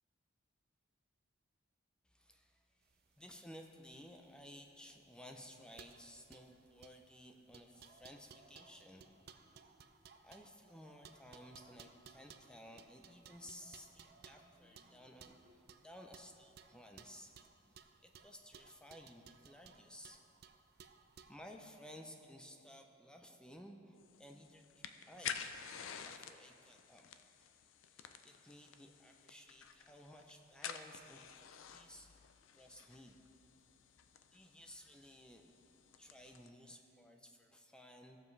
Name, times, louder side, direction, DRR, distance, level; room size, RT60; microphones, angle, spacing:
voice 1, 2.0-9.6 10.2-17.3 17.6-20.2 21.3-25.5 26.0-27.1 27.9-32.1 32.5-33.2 34.3-35.5 36.0-38.2, equal, 5° left, 3 dB, 0.5 m, -56 dB
sound 1, 2.9-21.4, right 6 dB, 50° right, 0.4 m, -61 dB
sound 2, 7.7-10.0 10.7-13.0 13.4-15.6 16.7-17.0, right 1 dB, 30° right, 1.3 m, -69 dB
sound 3, 24.0-36.5, left 8 dB, 70° left, 0.5 m, -51 dB
15.5 x 7.1 x 3.3 m, 2.8 s
head